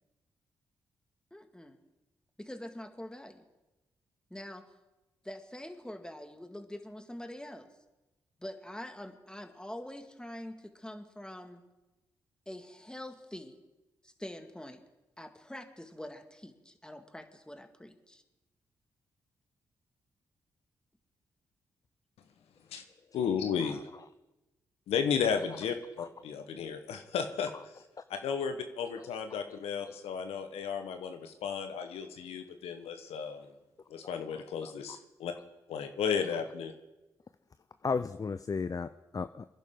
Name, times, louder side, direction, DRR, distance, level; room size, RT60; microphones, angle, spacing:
voice 1, 1.3-1.8 2.4-3.4 4.3-4.6 5.2-7.7 8.4-11.6 12.5-13.6 14.0-14.8 15.2-18.2, left 1 dB, 10° left, 6 dB, 2.0 m, -45 dB
voice 2, 23.1-23.8 24.9-27.5 28.1-33.5 33.9-35.3 35.7-36.7, left 7 dB, 75° left, 7 dB, 1.2 m, -34 dB
voice 3, 37.8-39.6, left 5 dB, 35° left, 12 dB, 0.5 m, -35 dB
24.5 x 10.5 x 3.8 m, 1.0 s
hypercardioid pair, 40°, 10 cm